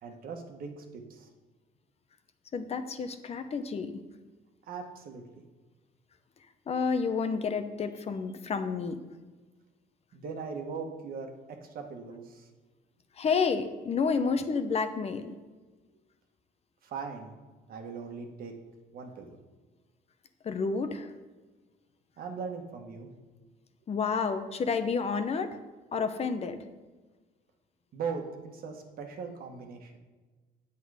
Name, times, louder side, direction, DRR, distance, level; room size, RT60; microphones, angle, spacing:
voice 1, 0.0-1.3 4.6-5.4 10.1-11.3 11.6-12.5 16.8-17.3 17.7-18.5 18.9-19.4 22.2-23.1 27.9-30.0, right 5 dB, 60° right, 3 dB, 1.5 m, -39 dB
voice 2, 2.5-3.9 6.7-9.0 13.2-15.4 20.4-21.1 23.9-25.6 25.9-26.6, left 5 dB, 40° left, 9 dB, 0.8 m, -30 dB
8.4 x 8.2 x 5.0 m, 1.3 s
cardioid pair, 110°, 17 cm